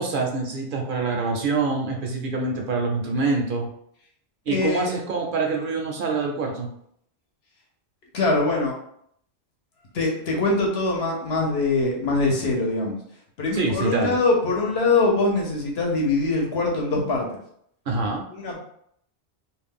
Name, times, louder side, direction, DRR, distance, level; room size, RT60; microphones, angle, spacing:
voice 1, 0.0-3.7 4.5-6.7 13.5-14.2 17.9-18.2, right 3 dB, 65° right, 1 dB, 0.7 m, -25 dB
voice 2, 4.5-4.9 8.1-8.8 9.9-13.0 13.4-17.4 18.3-18.6, left 3 dB, 80° left, -1 dB, 1.0 m, -23 dB
2.5 x 2.1 x 3.4 m, 0.68 s
omnidirectional pair, 1.1 m